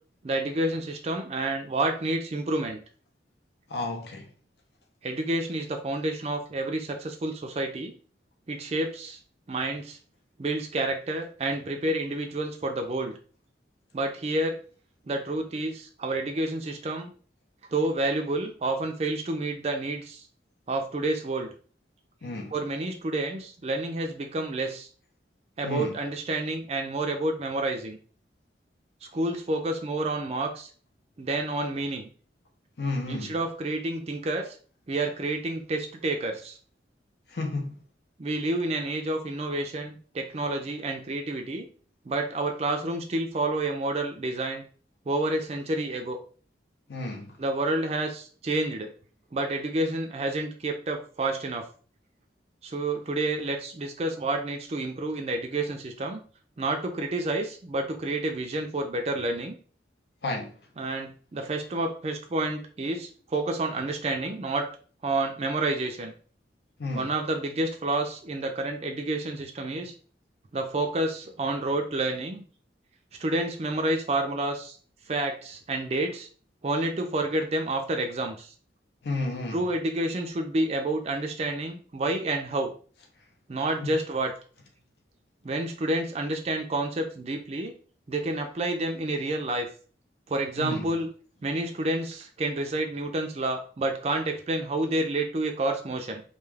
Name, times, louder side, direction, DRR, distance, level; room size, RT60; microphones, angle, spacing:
voice 1, 0.2-2.8 5.0-7.9 8.5-9.2 9.5-10.0 10.4-13.1 13.9-14.6 15.0-17.1 17.7-20.2 20.7-21.5 22.5-24.9 25.6-28.0 29.1-30.7 31.2-32.1 33.1-34.6 34.9-36.6 38.2-41.7 42.1-44.6 45.1-46.2 47.4-48.9 49.3-51.6 52.6-56.2 56.6-59.6 60.8-64.6 65.0-66.1 66.9-69.9 70.5-72.4 73.2-74.8 75.1-76.3 76.6-78.5 79.5-82.7 83.5-84.3 85.4-87.7 88.1-89.7 90.3-91.1 91.4-96.2, right 2 dB, 35° right, 0.4 m, -29 dB
voice 2, 3.7-4.3 22.2-22.6 25.6-25.9 32.8-33.4 37.3-37.8 46.9-47.4 60.2-60.6 66.8-67.1 79.0-79.6 83.8-84.0 90.6-90.9, left 2 dB, 65° left, 0.6 m, -32 dB
2.3 x 2.3 x 3.2 m
head